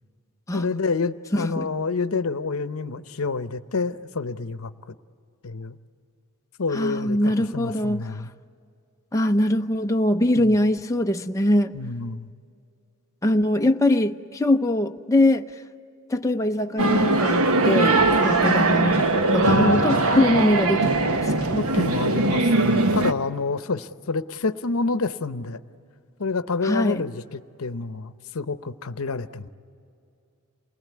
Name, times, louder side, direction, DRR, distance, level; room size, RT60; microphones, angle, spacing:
voice 1, 0.5-4.9 5.4-5.8 6.6-7.2 7.5-8.3 10.4-10.5 11.7-12.3 19.5-19.8 21.6-25.6 26.2-29.5, left 4 dB, 75° left, 0.8 m, -28 dB
voice 2, 1.3-1.7 6.7-8.1 9.1-11.7 13.2-15.6 16.1-21.6 26.6-27.0, left 1 dB, 15° left, 0.6 m, -22 dB
sound 1, 16.8-23.1, right 2 dB, 85° right, 1.2 m, -20 dB
28.0 x 20.5 x 9.4 m
head